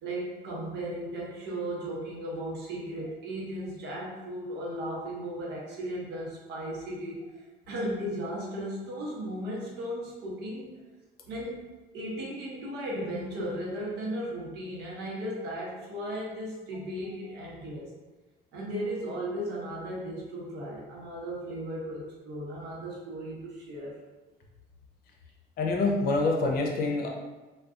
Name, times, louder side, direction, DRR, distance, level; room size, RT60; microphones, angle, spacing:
voice 1, 0.0-7.3 7.7-10.8 11.3-11.7 11.9-17.9 18.5-24.0, right 1 dB, 85° right, -4 dB, 0.9 m, -36 dB
voice 2, 25.6-27.1, left 3 dB, 60° left, 1 dB, 0.6 m, -26 dB
2.4 x 2.4 x 3.6 m, 1.2 s
cardioid pair, 110°, 17 cm